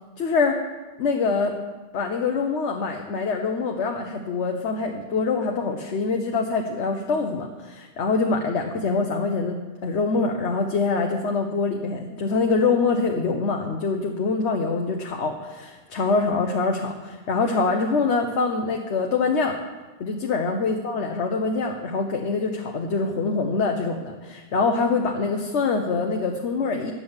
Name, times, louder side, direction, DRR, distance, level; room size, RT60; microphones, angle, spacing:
voice 1, 0.2-0.6 1.0-1.5 1.9-9.6 9.8-19.6 20.0-26.9, left 4 dB, 75° left, 2 dB, 1.2 m, -24 dB
9.6 x 8.6 x 7.1 m, 1.3 s
omnidirectional pair, 1.2 m